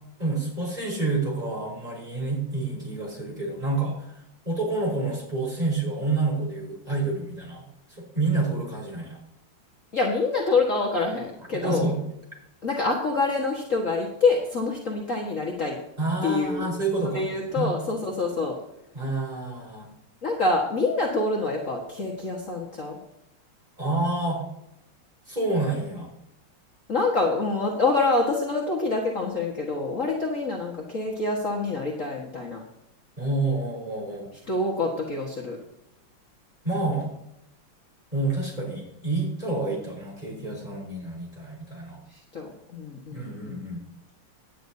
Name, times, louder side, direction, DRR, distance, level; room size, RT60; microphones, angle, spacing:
voice 1, 0.2-4.2 4.4-9.2 11.6-12.0 16.0-17.2 17.5-17.7 18.9-19.9 23.8-24.4 25.3-26.1 33.2-34.3 36.6-37.1 38.1-42.0 43.1-43.8, right 3 dB, 20° right, -3 dB, 4.9 m, -28 dB
voice 2, 9.9-11.9 12.6-15.8 16.2-16.7 17.0-18.5 20.2-23.0 26.9-32.6 34.5-35.6 42.3-43.6, left 3 dB, 40° left, -2 dB, 2.0 m, -26 dB
17.5 x 10.0 x 2.8 m, 0.81 s
omnidirectional pair, 2.2 m